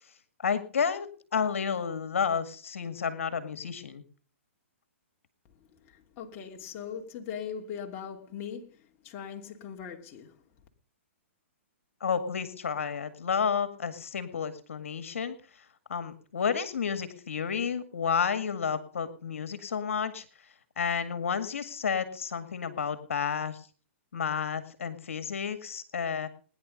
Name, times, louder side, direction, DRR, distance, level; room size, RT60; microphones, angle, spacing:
voice 1, 0.4-4.0 12.0-20.2 20.8-23.7 24.1-26.3, left 6 dB, 75° left, 2.0 m, -31 dB
voice 2, 5.7-10.4, left 7 dB, 35° left, 3.0 m, -40 dB
21.0 x 10.5 x 5.3 m
hypercardioid pair, 130°, 7 cm